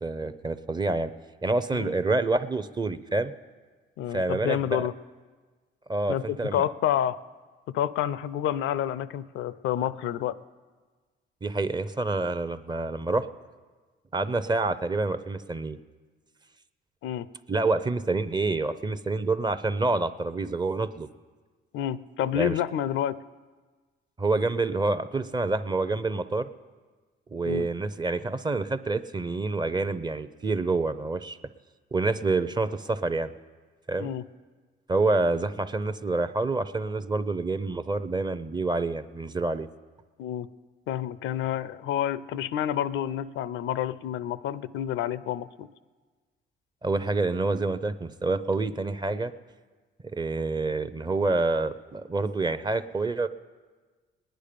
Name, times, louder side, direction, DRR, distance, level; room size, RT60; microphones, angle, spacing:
voice 1, 0.0-1.1 1.4-3.3 4.1-4.9 5.9-6.6 11.4-13.3 14.1-15.8 17.5-21.1 22.3-22.5 24.2-26.5 27.3-31.4 31.9-33.3 33.9-34.1 34.9-39.7 46.8-49.3 50.1-53.3, right 3 dB, 20° right, 13 dB, 0.6 m, -27 dB
voice 2, 4.0-4.9 6.1-7.2 7.7-10.4 17.0-17.3 21.7-23.2 27.4-27.7 34.0-34.2 40.2-40.5 40.9-45.7, left 11 dB, 80° left, 16 dB, 0.5 m, -29 dB
19.5 x 10.0 x 5.1 m, 1.4 s
cardioid pair, 90°, 20 cm